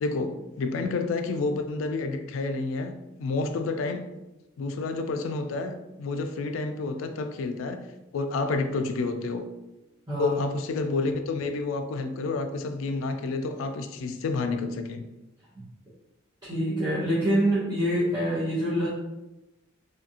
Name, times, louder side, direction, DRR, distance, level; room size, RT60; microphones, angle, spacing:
voice 1, 0.0-2.9 3.2-4.0 4.6-7.8 8.1-9.4 10.2-15.0, left 3 dB, 75° left, 7 dB, 0.3 m, -29 dB
voice 2, 10.1-10.4 15.6-15.7 16.4-18.9, equal, 20° right, -11 dB, 0.8 m, -25 dB
2.7 x 2.5 x 2.7 m, 0.98 s
head